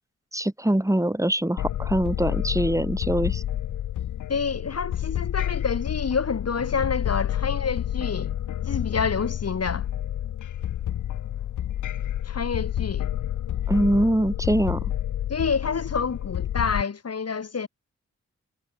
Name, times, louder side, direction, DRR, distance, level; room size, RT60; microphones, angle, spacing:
voice 1, 0.3-3.4 13.7-14.9, right 1 dB, 10° right, 6.5 m, -23 dB
sound 1, 1.6-16.8, left 11 dB, 90° left, 2.5 m, -29 dB
voice 2, 4.3-8.4 8.7-9.9 12.2-13.1 15.3-17.7, left 5 dB, 55° left, 4.2 m, -28 dB
supercardioid pair, 50°, 30 cm